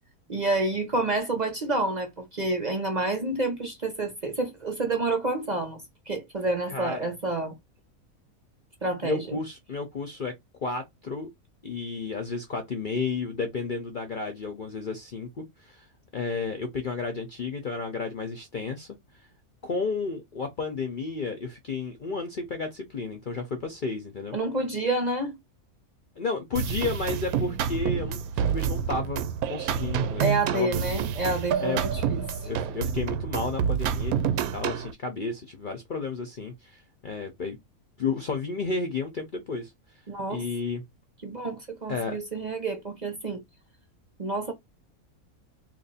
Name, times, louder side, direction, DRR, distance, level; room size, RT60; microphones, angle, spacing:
voice 1, 0.3-7.5 8.8-9.4 24.3-25.4 30.2-32.2 40.1-40.4 41.2-43.4 44.2-44.5, right 2 dB, 40° right, 0.7 m, -29 dB
voice 2, 6.7-7.1 9.0-10.3 10.6-11.3 11.6-15.9 16.1-19.3 19.6-24.4 26.2-29.2 29.5-30.3 30.5-30.8 31.6-31.9 32.4-34.1 34.5-37.6 38.0-40.0 40.3-40.8 41.9-42.2, left 4 dB, 50° left, 0.6 m, -32 dB
sound 1, 26.6-34.9, right 8 dB, 85° right, 1.0 m, -28 dB
2.9 x 2.5 x 4.0 m
omnidirectional pair, 1.5 m